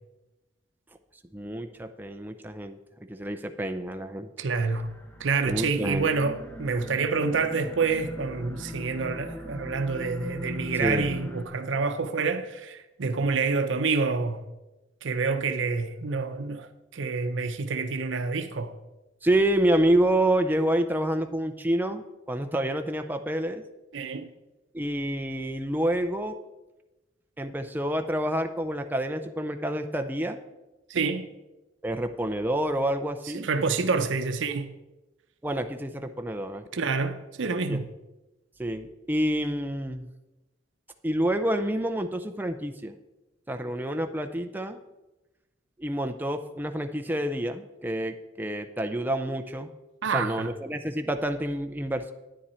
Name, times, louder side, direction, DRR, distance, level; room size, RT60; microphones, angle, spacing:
voice 1, 1.3-2.8 3.1-4.3 5.4-6.1 10.8-11.1 19.2-23.6 24.7-26.4 27.4-30.4 31.8-33.5 35.4-36.6 37.7-37.8 38.6-40.1 41.0-43.0 43.5-44.8 45.8-49.7 50.1-52.1, right 1 dB, 10° right, 0.5 m, -28 dB
voice 2, 4.4-4.9 5.2-14.4 15.0-16.7 16.9-18.7 23.9-24.3 30.9-31.3 33.3-34.7 36.7-37.8 50.0-50.5, right 4 dB, 85° right, 0.6 m, -27 dB
sound 1, 4.6-11.5, equal, 10° left, 0.9 m, -40 dB
10.0 x 9.6 x 4.3 m
head